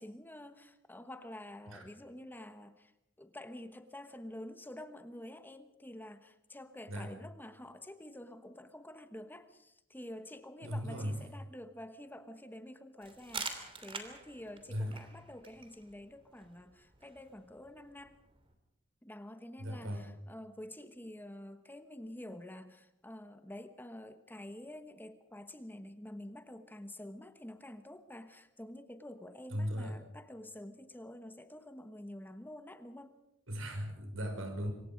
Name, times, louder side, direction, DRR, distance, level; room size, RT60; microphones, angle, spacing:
voice 1, 0.0-2.9 3.2-18.2 19.0-33.2, left 1 dB, 10° left, 9 dB, 1.1 m, -48 dB
voice 2, 10.6-11.2 14.7-14.9 19.6-20.0 29.5-29.9 33.5-34.7, equal, 90° right, 5 dB, 5.7 m, -37 dB
sound 1, 13.0-18.5, right 4 dB, 25° right, 3.0 m, -47 dB
26.5 x 23.5 x 5.2 m, 0.82 s
head